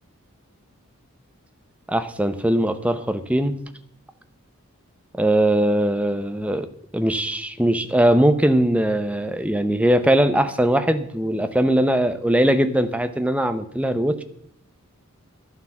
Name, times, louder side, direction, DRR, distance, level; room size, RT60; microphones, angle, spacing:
voice 1, 1.9-3.6 5.1-6.7 6.9-14.2, right 1 dB, 5° right, 9 dB, 0.7 m, -20 dB
12.0 x 9.4 x 7.3 m, 0.70 s
head